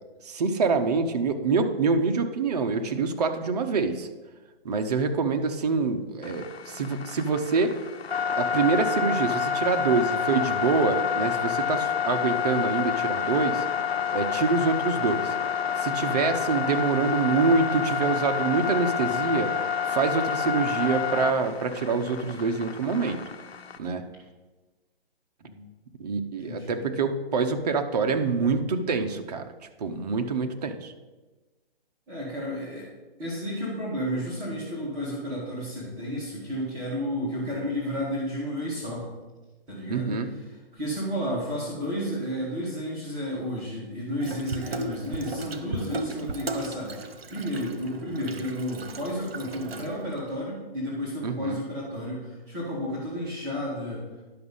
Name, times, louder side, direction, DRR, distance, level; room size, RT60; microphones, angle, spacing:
voice 1, 0.2-4.1 4.6-7.8 8.4-13.6 14.1-15.3 15.8-19.6 19.9-23.2 23.8-24.1 26.0-29.5 29.8-30.9 39.9-40.3 51.2-51.6, right 4 dB, 40° right, 6 dB, 0.8 m, -26 dB
sound 1, 6.2-23.8, left 7 dB, 85° left, 1.1 m, -29 dB
voice 2, 26.4-26.8 32.1-32.9 33.2-39.1 39.7-40.2 40.7-54.0, equal, 10° right, -8 dB, 1.9 m, -32 dB
Water tap faucet / Sink (filling or washing), 44.2-50.3, right 2 dB, 75° right, 1.2 m, -36 dB
10.5 x 6.1 x 5.5 m, 1.2 s
hypercardioid pair, 165°, 30 cm